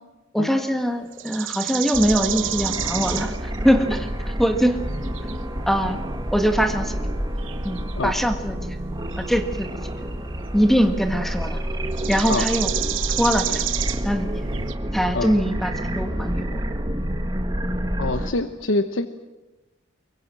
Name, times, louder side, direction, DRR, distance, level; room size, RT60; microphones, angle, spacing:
voice 1, 0.3-4.8 5.7-6.0 6.3-7.0 7.6-8.8 9.2-9.8 10.5-11.6 12.1-12.7 13.2-13.7 14.0-14.3 14.9-16.6, equal, ahead, 7 dB, 1.7 m, -22 dB
sound 1, 1.1-3.6 5.0-5.4 7.4-7.9 9.1-9.6 11.8-14.7, right 12 dB, 80° right, 1.1 m, -29 dB
sound 2, 1.9-18.3, equal, 20° right, 2.0 m, -28 dB
voice 2, 18.0-19.1, left 2 dB, 85° left, 9 dB, 1.0 m, -25 dB
24.0 x 23.0 x 7.6 m, 1.1 s
head